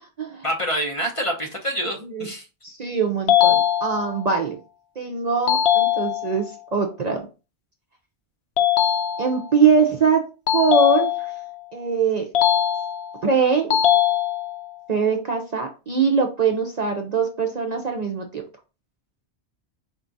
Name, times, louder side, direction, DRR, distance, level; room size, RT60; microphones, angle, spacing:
voice 1, 0.4-2.5, equal, 35° left, 2 dB, 0.8 m, -26 dB
voice 2, 2.6-4.6 5.0-6.5 6.7-7.3 9.2-10.3 10.5-11.1 11.7-12.3 13.2-13.8 14.9-18.4, right 5 dB, 50° right, 2 dB, 0.6 m, -22 dB
sound 1, 3.3-4.3 5.5-6.5 8.6-9.6 10.5-11.5 12.3-13.3 13.7-14.7, left 10 dB, 75° left, 0.9 m, -21 dB
4.4 x 2.4 x 3.9 m, 0.31 s
omnidirectional pair, 1.1 m